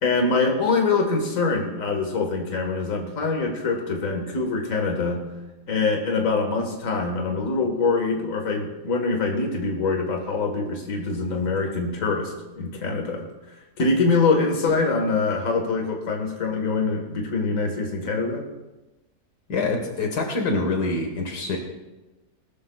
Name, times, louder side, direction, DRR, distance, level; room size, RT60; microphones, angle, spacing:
voice 1, 0.0-5.2 5.7-13.3 13.8-18.4, left 3 dB, 55° left, 2 dB, 2.0 m, -24 dB
voice 2, 19.5-21.6, left 3 dB, 80° left, 3 dB, 2.1 m, -25 dB
19.5 x 12.5 x 2.4 m, 1.1 s
omnidirectional pair, 1.7 m